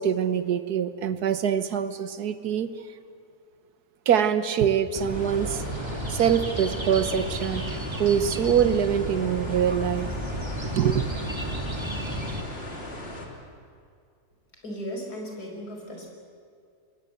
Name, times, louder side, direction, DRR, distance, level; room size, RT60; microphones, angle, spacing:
voice 1, 0.0-2.7 4.1-10.1 10.6-11.1, right 8 dB, 80° right, 12 dB, 1.7 m, -24 dB
sound 1, 4.9-12.4, right 1 dB, 15° right, 2.0 m, -33 dB
sound 2, 5.1-13.3, left 1 dB, 40° left, 3.2 m, -38 dB
voice 2, 14.6-16.1, equal, 80° left, 1 dB, 5.7 m, -36 dB
26.0 x 21.0 x 8.0 m, 2.3 s
omnidirectional pair, 1.6 m